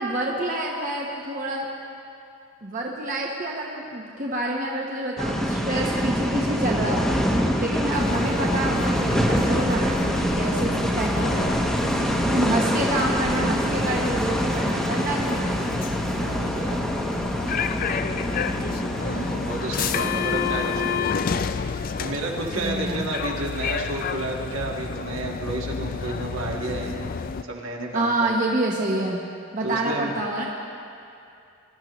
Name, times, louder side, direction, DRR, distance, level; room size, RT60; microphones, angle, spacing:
voice 1, 0.0-1.7 2.6-7.3 7.6-11.7 12.3-15.7 22.6-23.1 27.9-29.2 29.5-30.5, right 1 dB, 40° right, -2 dB, 1.0 m, -27 dB
sound 1, 5.2-21.0, equal, ahead, 0.9 m, -25 dB
sound 2, 7.9-27.4, left 6 dB, 40° left, 0.3 m, -30 dB
voice 2, 11.9-12.4 16.1-17.3 18.9-21.1 22.0-27.1 27.5-28.1 29.6-30.1, right 2 dB, 70° right, -1 dB, 1.7 m, -32 dB
22.0 x 12.0 x 3.1 m, 2.6 s
head